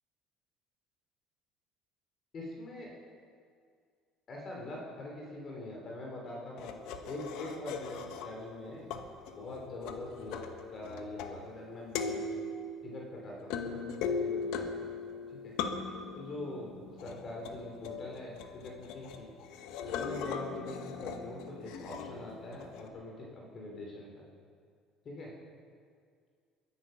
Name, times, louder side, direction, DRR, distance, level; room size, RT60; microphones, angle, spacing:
voice 1, 2.3-3.0 4.3-8.9 9.3-10.4 10.7-12.2 12.8-14.9 15.3-15.5 16.1-19.3 19.8-24.3 25.0-25.3, left 2 dB, 35° left, -1 dB, 3.2 m, -43 dB
sound 1, 6.6-8.5 8.9-11.6 11.9-22.9, left 5 dB, 75° left, 1.3 m, -39 dB
22.0 x 10.5 x 5.7 m, 2.1 s
cardioid pair, 135°, 0 cm